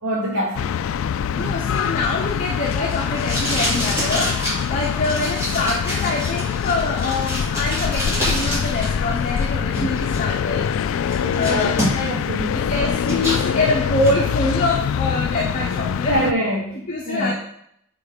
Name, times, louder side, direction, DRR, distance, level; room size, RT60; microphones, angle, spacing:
voice 1, 0.0-0.8 1.2-1.7 11.1-12.7 16.1-17.3, right 1 dB, 85° right, -4 dB, 1.2 m, -26 dB
sound 1, 0.6-16.3, left 7 dB, 85° left, 0.3 m, -24 dB
voice 2, 1.3-4.4 4.7-10.7 11.3-12.1 12.5-16.2 16.9-17.3, left 2 dB, 40° left, -2 dB, 0.8 m, -25 dB
Packing tape duct tape, 1.4-8.9 9.2-10.2 10.6-10.7 11.1-12.2 12.6-13.4 13.8-14.2, equal, 15° right, 2.7 m, -27 dB
5.9 x 4.4 x 5.0 m, 0.71 s
head